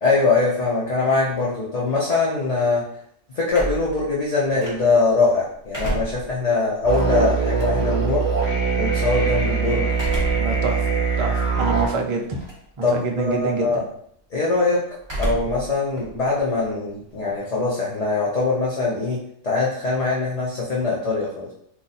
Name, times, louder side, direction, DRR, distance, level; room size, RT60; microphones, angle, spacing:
voice 1, 0.0-2.9 3.3-8.3 8.8-9.9 12.8-13.8 14.3-14.8 15.2-21.5, left 3 dB, 40° left, -5 dB, 0.6 m, -22 dB
sound 1, 3.5-5.1 5.5-8.1 9.9-10.6 11.1-11.2 12.2-12.7 13.0-13.4 15.0-15.7 16.0-17.4, equal, 25° right, 0.9 m, -31 dB
sound 2, 6.8-11.9, right 5 dB, 5° left, 0.8 m, -22 dB
voice 2, 10.3-12.4 12.8-13.9, right 4 dB, 60° right, 1 dB, 0.3 m, -27 dB
2.6 x 2.3 x 4.0 m, 0.67 s
omnidirectional pair, 1.3 m